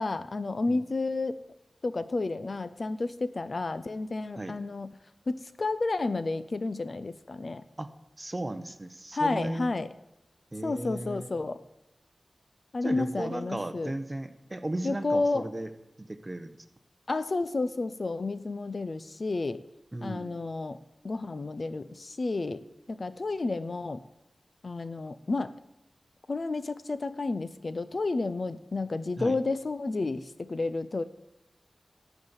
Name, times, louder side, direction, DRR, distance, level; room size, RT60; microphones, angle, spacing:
voice 1, 0.0-1.4 1.8-4.9 5.3-7.6 9.1-9.9 10.6-11.6 12.7-13.9 14.8-15.5 17.1-19.6 20.0-20.8 21.0-24.0 24.6-25.5 26.3-31.0, left 3 dB, 50° left, 14 dB, 0.5 m, -31 dB
voice 2, 8.2-9.7 10.5-11.3 12.8-15.7 16.0-16.5 19.9-20.4 29.2-29.4, right 1 dB, 25° right, 10 dB, 0.9 m, -35 dB
12.0 x 7.2 x 8.0 m, 0.90 s
wide cardioid pair, 100°, 0 cm